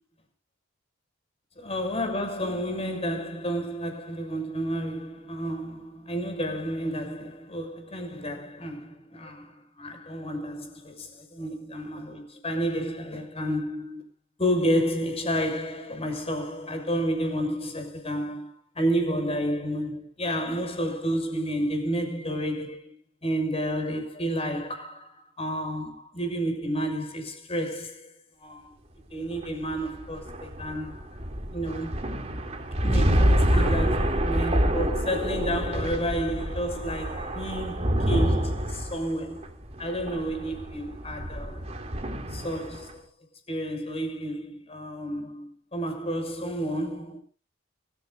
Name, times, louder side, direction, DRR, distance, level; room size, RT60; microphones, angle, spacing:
voice 1, 1.5-14.0 14.4-28.1 28.4-28.7 29.1-31.1 31.5-32.1 32.8-39.5 39.8-41.7 42.3-43.1 43.5-47.2, equal, 30° left, 6.3 m, -31 dB
sound 1, 29.3-42.9, equal, 35° right, 3.0 m, -27 dB
24.0 x 15.0 x 2.6 m
head